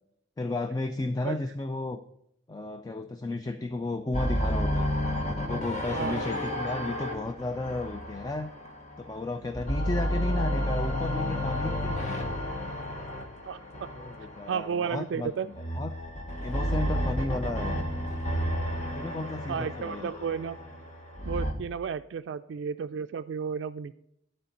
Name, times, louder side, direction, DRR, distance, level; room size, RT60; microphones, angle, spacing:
voice 1, 0.4-2.0 2.5-4.9 5.3-8.5 9.0-12.2 12.6-12.8 14.0-15.3 15.7-15.9 16.4-18.1 18.9-20.1, left 2 dB, 20° left, 8 dB, 0.3 m, -33 dB
sound 1, 4.1-9.1 9.4-14.8 15.5-21.5, equal, 35° left, 1.1 m, -31 dB
voice 2, 5.9-6.2 13.4-13.6 14.5-15.5 19.5-20.6 21.2-23.9, right 6 dB, 70° right, 10 dB, 0.3 m, -32 dB
12.0 x 4.4 x 5.4 m, 0.77 s
head